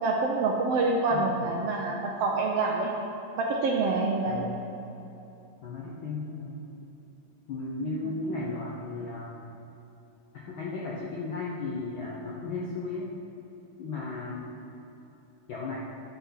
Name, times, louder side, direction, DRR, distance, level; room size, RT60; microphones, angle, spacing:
voice 1, 0.0-2.9 3.4-4.4 8.0-8.1, right 3 dB, 75° right, 0 dB, 1.5 m, -26 dB
voice 2, 1.1-1.5 4.3-4.6 5.6-6.6 7.5-9.4 10.5-13.1 13.8-14.5 15.5-15.8, left 3 dB, 70° left, -4 dB, 1.2 m, -35 dB
9.9 x 5.9 x 5.7 m, 2.9 s
omnidirectional pair, 3.3 m